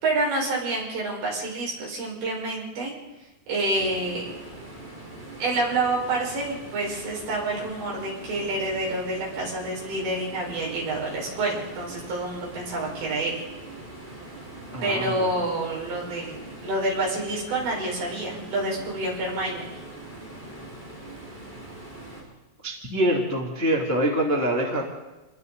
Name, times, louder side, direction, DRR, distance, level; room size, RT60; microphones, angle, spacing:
voice 1, 0.0-2.9 3.5-4.3 5.4-13.4 14.8-19.8, right 2 dB, 55° right, -3 dB, 7.8 m, -28 dB
sound 1, 3.7-22.2, right 2 dB, 10° right, 6.9 m, -42 dB
voice 2, 14.7-15.3 22.6-24.8, right 1 dB, 5° left, -2 dB, 1.5 m, -25 dB
30.0 x 22.0 x 4.2 m, 1.0 s
omnidirectional pair, 6.0 m